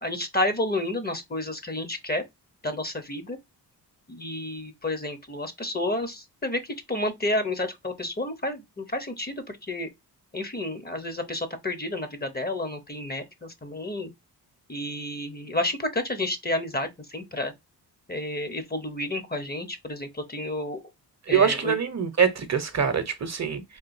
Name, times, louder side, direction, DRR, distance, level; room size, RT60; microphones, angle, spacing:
voice 1, 0.0-2.2 2.6-3.4 4.1-9.9 10.3-14.1 14.7-17.5 18.1-20.8 21.3-21.8, left 1 dB, 20° left, 0.9 m, -30 dB
voice 2, 21.3-23.6, right 7 dB, 40° right, 0.9 m, -24 dB
3.8 x 2.5 x 2.6 m
cardioid pair, 70°, 42 cm